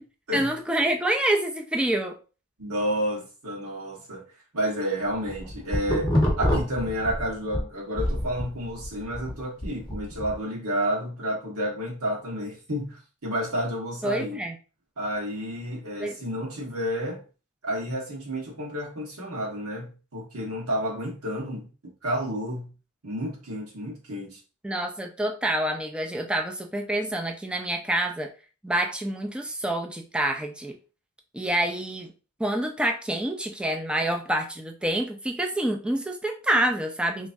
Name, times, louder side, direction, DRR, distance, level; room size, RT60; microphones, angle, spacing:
voice 1, 0.3-2.2 14.0-14.6 16.0-16.2 24.6-28.3 28.6-30.8 31.3-32.1 32.4-37.3, right 1 dB, 5° right, 0.4 m, -27 dB
voice 2, 2.6-4.2 4.5-14.4 15.0-17.2 17.6-22.7 23.0-24.4, equal, 85° right, 1.4 m, -30 dB
sound 1, 5.1-7.6 8.0-10.3, left 1 dB, 20° left, 1.0 m, -26 dB
3.3 x 3.1 x 2.6 m
head